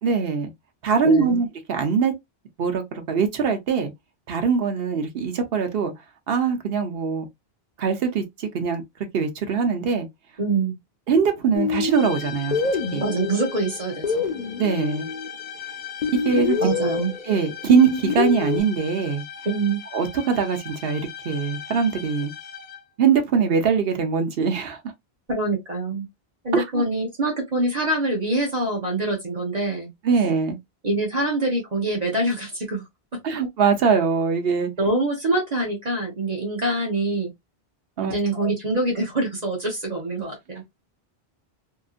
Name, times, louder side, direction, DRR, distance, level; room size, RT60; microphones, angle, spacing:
voice 1, 0.0-0.5 0.8-2.1 2.6-3.9 4.3-5.9 6.3-7.3 7.8-8.8 9.1-10.1 11.1-12.6 12.9-13.0 14.6-15.1 16.2-16.6 17.2-19.2 19.9-22.3 23.0-24.8 26.5-26.8 30.0-30.6 33.2-34.7 38.0-38.1 38.4-38.5, right 5 dB, 70° right, 0.9 m, -22 dB
voice 2, 1.0-1.4 10.4-10.7 13.0-14.3 16.6-17.1 19.4-19.8 25.3-26.1 26.4-29.9 30.8-32.8 34.8-37.3 38.0-40.6, right 2 dB, 45° right, 0.9 m, -25 dB
sound 1, 11.5-15.3 16.0-18.6, left 5 dB, 55° left, 0.6 m, -26 dB
sound 2, 11.9-23.0, left 8 dB, 85° left, 0.8 m, -39 dB
2.8 x 2.6 x 2.4 m
omnidirectional pair, 1.1 m